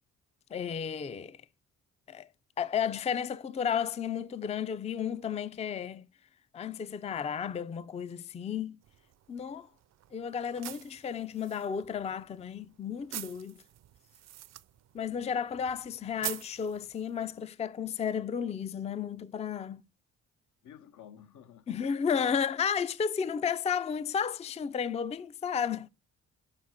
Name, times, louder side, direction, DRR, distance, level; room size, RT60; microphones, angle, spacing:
voice 1, 0.5-1.4 2.1-2.3 2.6-6.1 6.5-8.8 9.3-9.7 10.1-13.6 14.9-19.8 21.7-25.9, left 7 dB, 20° left, 0.4 m, -33 dB
sound 1, 8.8-17.4, right 13 dB, 60° right, 0.5 m, -46 dB
voice 2, 20.6-21.8, left 9 dB, 75° left, 1.0 m, -52 dB
5.7 x 5.6 x 6.3 m
cardioid pair, 90°, 30 cm